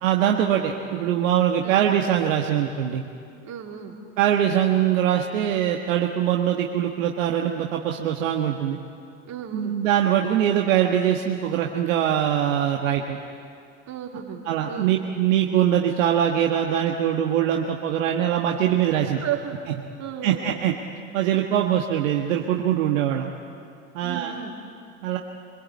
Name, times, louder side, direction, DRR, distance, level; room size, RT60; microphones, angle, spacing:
voice 1, 0.0-3.0 4.2-8.8 9.5-13.2 14.5-19.2 20.2-20.7 21.1-23.3 23.9-24.3 25.0-25.2, right 10 dB, 70° right, 1 dB, 1.6 m, -22 dB
voice 2, 3.4-4.0 9.2-9.7 13.9-14.4 14.7-14.9 19.1-19.6 20.0-20.5 24.0-24.6, right 9 dB, 40° right, 1 dB, 3.6 m, -33 dB
25.0 x 22.0 x 8.4 m, 2.4 s
hypercardioid pair, 75°, 40 cm